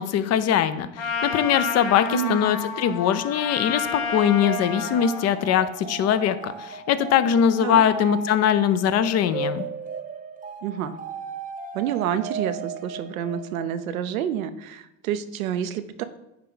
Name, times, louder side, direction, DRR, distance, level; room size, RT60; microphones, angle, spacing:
voice 1, 0.0-9.6, left 9 dB, 40° left, 13 dB, 0.5 m, -22 dB
Trumpet, 1.0-5.3, left 5 dB, 80° left, 1.2 m, -30 dB
sound 1, 4.1-13.9, right 5 dB, 20° right, 0.9 m, -36 dB
voice 2, 10.6-10.9 11.7-16.0, right 10 dB, 85° right, 11 dB, 0.6 m, -28 dB
9.5 x 3.3 x 3.8 m, 0.89 s
hypercardioid pair, 75°, 41 cm